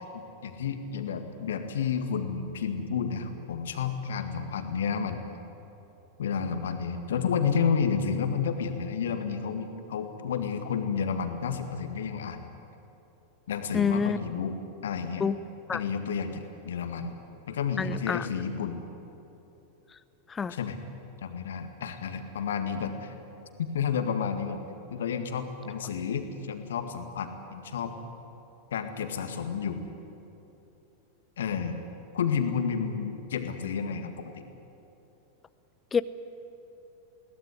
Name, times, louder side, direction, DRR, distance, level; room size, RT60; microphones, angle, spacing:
voice 1, 0.1-5.2 6.2-12.5 13.5-14.6 14.8-15.3 15.7-17.2 17.5-18.8 20.5-20.8 21.2-23.1 23.7-24.6 24.9-27.9 28.7-29.8 31.4-31.8 32.1-34.4, left 6 dB, 60° left, 7 dB, 1.9 m, -31 dB
voice 2, 13.7-14.2 15.2-15.4 15.7-15.8 17.8-18.3 20.3-20.5 35.9-36.0, left 6 dB, 20° left, 15 dB, 0.6 m, -27 dB
21.5 x 18.0 x 9.8 m, 2.9 s
figure-of-eight pair, 90°, 0 cm